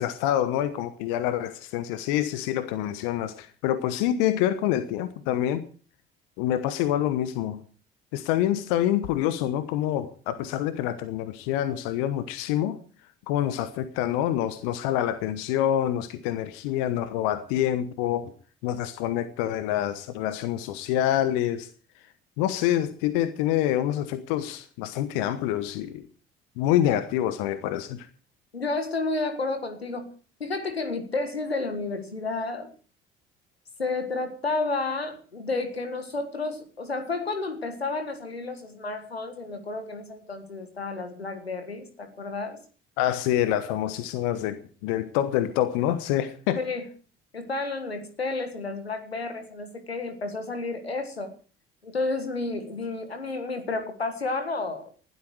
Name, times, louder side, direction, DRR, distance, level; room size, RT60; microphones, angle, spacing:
voice 1, 0.0-5.6 6.4-7.6 8.1-12.8 13.3-18.3 18.6-21.7 22.4-26.1 26.6-28.1 43.0-46.6, left 12 dB, 65° left, 1.1 m, -26 dB
voice 2, 28.5-30.1 30.4-32.7 33.8-42.6 46.6-46.9 47.3-51.3 51.8-54.9, left 3 dB, 90° left, 1.7 m, -31 dB
19.5 x 12.5 x 4.8 m
figure-of-eight pair, 50°, 30 cm